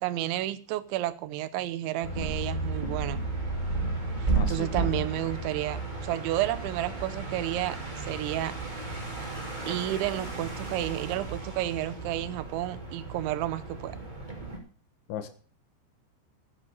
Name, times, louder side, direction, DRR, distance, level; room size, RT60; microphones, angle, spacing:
voice 1, 0.0-3.2 4.5-8.5 9.7-14.0, right 14 dB, 85° right, 12 dB, 3.2 m, -31 dB
sound 1, 2.0-14.6, right 3 dB, 15° right, 2.1 m, -33 dB
voice 2, 4.3-4.9 15.1-15.3, left 10 dB, 85° left, 11 dB, 3.7 m, -36 dB
12.0 x 8.7 x 6.8 m, 0.42 s
omnidirectional pair, 5.3 m